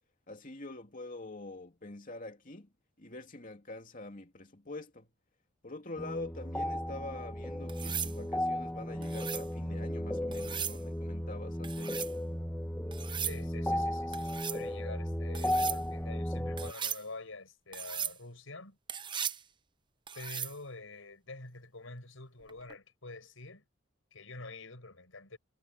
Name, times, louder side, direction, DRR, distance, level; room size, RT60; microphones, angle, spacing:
voice 1, 0.3-2.7 3.0-5.1 5.6-12.1, left 2 dB, 40° left, 2.9 m, -45 dB
sound 1, 6.0-16.7, left 1 dB, 10° left, 1.4 m, -35 dB
sound 2, 7.7-8.2 9.0-9.5 10.3-10.8 11.6-12.1 12.9-13.4 14.1-14.6 15.3-15.8 16.6-17.0 17.7-18.2 18.9-19.4 20.1-20.6 22.5-22.8, right 8 dB, 25° right, 0.8 m, -37 dB
voice 2, 13.2-18.8 20.1-23.6 24.1-25.4, left 3 dB, 85° left, 5.0 m, -47 dB
head